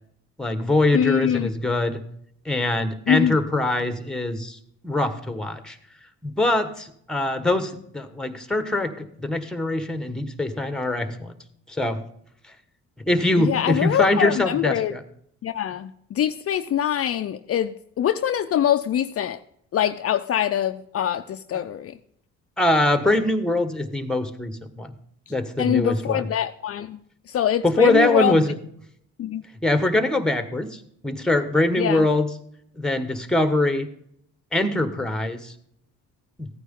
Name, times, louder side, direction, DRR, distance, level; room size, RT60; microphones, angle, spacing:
voice 1, 0.4-2.0 2.4-4.6 4.8-5.8 6.2-11.4 11.7-12.0 13.0-15.0 21.5-21.6 22.6-24.9 25.3-26.3 27.6-28.5 29.6-32.3 32.8-33.9 34.5-35.5 36.4-36.5, left 2 dB, ahead, 10 dB, 1.3 m, -23 dB
voice 2, 0.9-1.5 3.1-3.4 13.4-14.9 15.4-19.4 19.7-21.9 25.6-27.0 27.3-28.3 29.2-29.4 31.8-32.1, left 10 dB, 50° left, 9 dB, 0.5 m, -24 dB
14.5 x 9.2 x 3.7 m, 0.69 s
cardioid pair, 90°, 30 cm